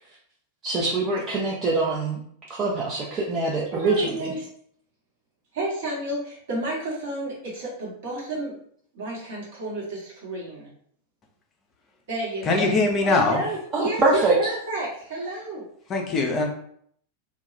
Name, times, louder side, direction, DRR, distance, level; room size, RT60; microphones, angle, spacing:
voice 1, 0.6-2.2 2.5-4.3 13.7-14.3, right 3 dB, 25° right, -4 dB, 0.5 m, -24 dB
voice 2, 3.7-4.4 5.5-8.6 8.9-10.7 12.1-12.7 13.0-15.7, right 2 dB, 55° right, -4 dB, 1.1 m, -31 dB
voice 3, 12.4-13.4 15.9-16.5, left 3 dB, 30° left, 2 dB, 0.5 m, -22 dB
2.2 x 2.2 x 3.0 m, 0.64 s
figure-of-eight pair, 90°, 0 cm